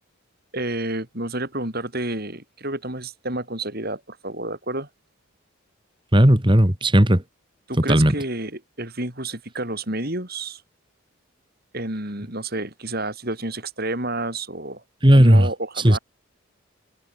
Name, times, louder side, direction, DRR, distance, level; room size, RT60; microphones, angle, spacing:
voice 1, 0.5-4.9 7.7-10.6 11.7-14.8 15.1-16.0, right 2 dB, 45° right, 7.0 m, -30 dB
voice 2, 6.1-7.2 7.9-8.1 15.0-15.5 15.8-16.0, equal, 25° right, 2.2 m, -15 dB
head